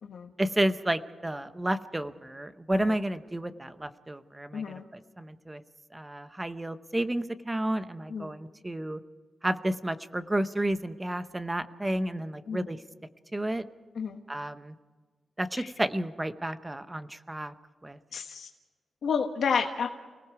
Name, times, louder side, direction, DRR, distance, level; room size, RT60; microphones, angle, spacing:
voice 1, 0.4-5.6 5.9-9.0 9.4-12.8 13.3-13.6 14.3-14.7 15.4-17.5 17.8-18.0, right 1 dB, 10° right, 10 dB, 0.8 m, -31 dB
voice 2, 4.5-4.9 8.1-8.3 12.5-12.7 13.9-14.2 15.6-15.7 18.1-18.5 19.0-19.9, left 6 dB, 65° left, 3 dB, 1.3 m, -31 dB
29.5 x 18.5 x 4.8 m, 1.4 s
wide cardioid pair, 175°, 0 cm